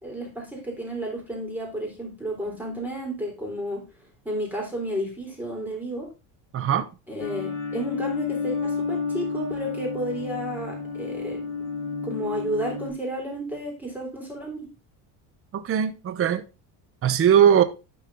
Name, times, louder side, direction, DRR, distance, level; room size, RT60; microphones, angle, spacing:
voice 1, 0.0-3.8 4.2-6.1 7.1-11.4 12.0-14.7, right 1 dB, 5° right, 3.5 m, -32 dB
voice 2, 6.5-6.9 15.5-16.4 17.0-17.6, right 8 dB, 30° right, 0.8 m, -19 dB
sound 1, 7.2-12.9, left 4 dB, 30° left, 4.9 m, -31 dB
12.0 x 4.6 x 3.7 m
cardioid pair, 140°, 43 cm